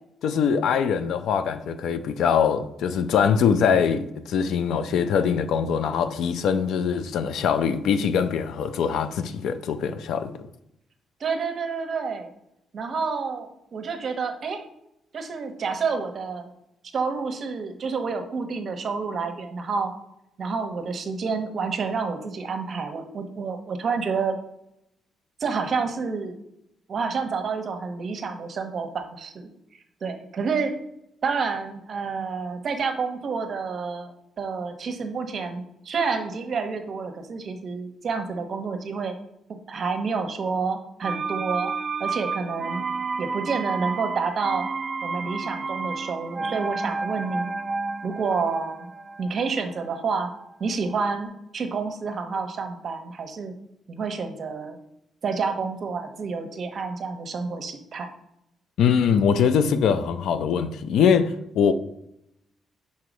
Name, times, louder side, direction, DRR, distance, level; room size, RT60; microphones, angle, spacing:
voice 1, 0.2-10.3 58.8-61.7, left 7 dB, 75° left, 0.5 m, -22 dB
voice 2, 11.2-12.3 12.7-14.6 15.1-16.5 16.9-19.9 20.4-24.4 25.4-26.4 26.9-29.5 30.0-30.7 31.2-39.2 39.5-41.7 42.0-42.8 43.2-44.7 45.0-47.5 48.0-48.9 49.2-50.3 50.6-53.5 53.9-54.8 55.2-58.1, right 5 dB, 50° right, 0.9 m, -29 dB
sound 1, 41.0-50.7 51.0-51.1, right 4 dB, 35° right, 0.3 m, -31 dB
4.7 x 4.2 x 5.1 m
cardioid pair, 90°, 0 cm